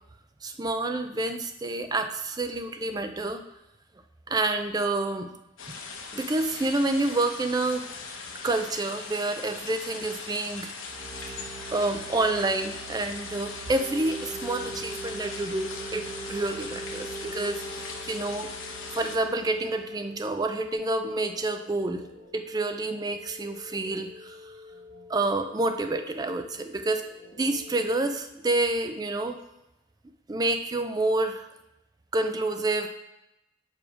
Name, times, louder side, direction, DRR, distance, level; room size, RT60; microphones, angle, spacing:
voice 1, 0.4-3.4 4.3-5.3 6.1-7.9 8.4-10.7 11.2-11.3 11.7-18.5 18.9-22.0 22.3-24.5 25.1-27.0 27.3-29.4 30.3-31.5 32.1-32.9, right 2 dB, 20° right, 7 dB, 0.4 m, -28 dB
sound 1, 5.6-19.2, left 4 dB, 90° left, 0.9 m, -40 dB
sound 2, 10.8-20.3, right 3 dB, 35° right, 1.2 m, -41 dB
sound 3, 15.7-28.1, left 3 dB, 70° left, 1.2 m, -48 dB
5.0 x 4.9 x 4.8 m, 0.91 s
head